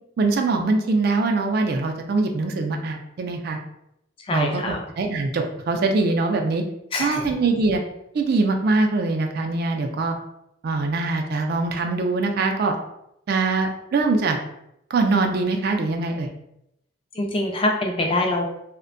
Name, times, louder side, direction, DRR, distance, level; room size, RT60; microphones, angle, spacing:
voice 1, 0.2-3.6 4.3-6.6 7.0-7.8 8.1-10.2 10.6-12.8 13.3-14.4 14.9-16.3, right 3 dB, 55° right, 4 dB, 0.3 m, -23 dB
voice 2, 4.2-4.8 6.9-7.4 17.1-18.5, left 2 dB, 30° left, 2 dB, 0.4 m, -24 dB
2.5 x 2.1 x 2.5 m, 0.80 s
head